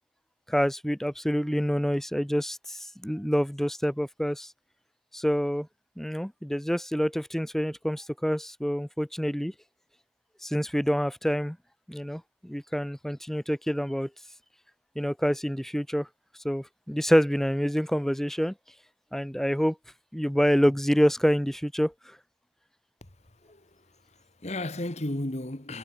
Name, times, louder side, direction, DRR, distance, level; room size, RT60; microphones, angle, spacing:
voice 1, 0.5-4.5 5.1-5.7 6.0-9.5 10.4-11.6 11.9-14.1 15.0-16.1 16.4-18.5 19.1-19.8 20.1-22.2, equal, ahead, 0.6 m, -27 dB
voice 2, 23.2-25.8, left 1 dB, 35° left, 1.6 m, -35 dB
head